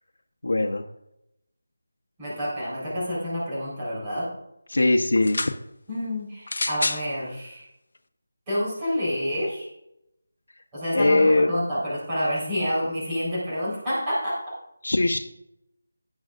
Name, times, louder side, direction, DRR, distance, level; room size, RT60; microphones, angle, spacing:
voice 1, 0.4-0.8 4.7-5.5 10.9-11.5 14.8-15.2, left 2 dB, 75° left, 1 dB, 1.0 m, -21 dB
voice 2, 2.2-4.3 5.9-7.7 8.5-9.7 10.7-14.5, equal, 10° right, -10 dB, 4.3 m, -28 dB
sound 1, 5.1-5.6 6.5-7.1 7.9-8.0, left 2 dB, 60° left, 0.8 m, -28 dB
17.5 x 7.3 x 2.5 m, 0.84 s
figure-of-eight pair, 175°, 0 cm